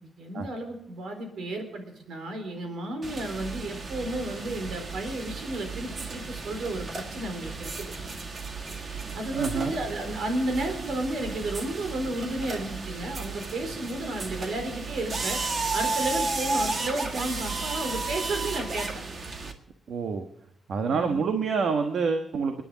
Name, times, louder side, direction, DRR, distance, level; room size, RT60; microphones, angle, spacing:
voice 1, 0.0-7.9 9.1-15.4 15.7-19.0 20.9-21.3, right 1 dB, 85° right, 5 dB, 4.2 m, -33 dB
sound 1, 3.0-19.5, right 3 dB, 40° right, 1.8 m, -34 dB
voice 2, 9.3-9.7 19.9-20.3 20.7-22.6, right 5 dB, 70° right, 5 dB, 1.2 m, -27 dB
29.0 x 9.9 x 3.9 m, 0.80 s
wide cardioid pair, 170°, 0 cm